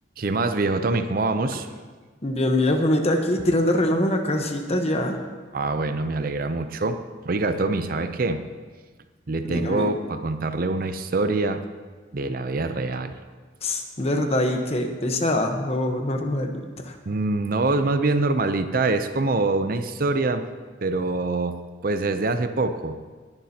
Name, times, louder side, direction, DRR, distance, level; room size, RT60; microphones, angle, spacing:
voice 1, 0.2-1.7 5.5-8.4 9.3-11.6 12.1-13.1 17.0-20.5 20.8-23.0, right 3 dB, 50° right, 9 dB, 0.6 m, -25 dB
voice 2, 2.2-5.2 9.5-9.9 13.6-16.9, left 1 dB, 35° left, 5 dB, 1.1 m, -23 dB
19.5 x 10.5 x 2.9 m, 1.4 s
head